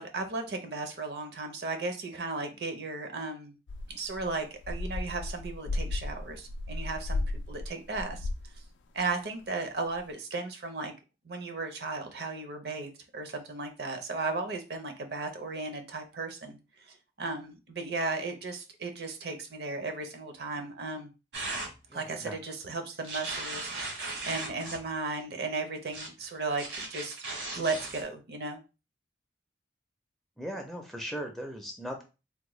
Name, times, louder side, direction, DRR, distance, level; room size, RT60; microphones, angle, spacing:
voice 1, 0.0-3.5 3.9-8.3 8.9-10.9 11.2-16.6 16.9-21.1 21.9-27.2 27.5-28.6, right 3 dB, 60° right, 5 dB, 0.5 m, -35 dB
sound 1, 3.7-8.7 9.0-9.1 9.9-10.0, left 2 dB, 80° left, 0.3 m, -35 dB
sound 2, 21.3-21.7 23.0-24.8 25.9-26.1 26.6-28.0, right 2 dB, 85° right, 1.2 m, -37 dB
voice 2, 21.9-22.4 30.4-32.0, equal, ahead, 1 dB, 0.4 m, -38 dB
3.5 x 2.1 x 3.0 m, 0.30 s
head